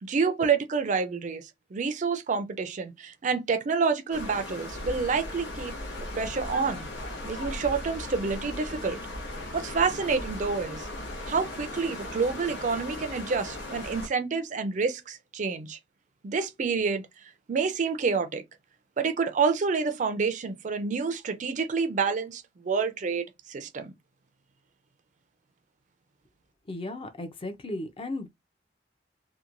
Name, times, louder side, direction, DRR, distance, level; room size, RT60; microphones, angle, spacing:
voice 1, 0.0-5.8 6.2-6.9 7.2-9.0 9.5-10.9 11.3-15.8 16.2-18.4 19.0-23.9, right 5 dB, 45° right, 0.4 m, -28 dB
sound 1, 4.1-14.1, left 1 dB, 80° left, 0.9 m, -37 dB
voice 2, 26.7-28.3, left 2 dB, 30° left, 0.5 m, -35 dB
2.8 x 2.1 x 2.5 m
head